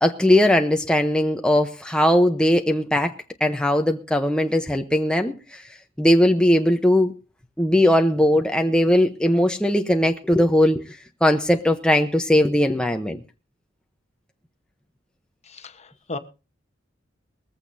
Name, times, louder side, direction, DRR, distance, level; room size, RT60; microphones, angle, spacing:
voice 1, 0.0-3.1 3.4-5.6 6.0-7.1 7.6-10.8 11.2-13.2, left 1 dB, 5° left, 0.9 m, -19 dB
voice 2, 15.5-16.2, left 3 dB, 35° left, 1.1 m, -35 dB
21.0 x 14.5 x 2.7 m
head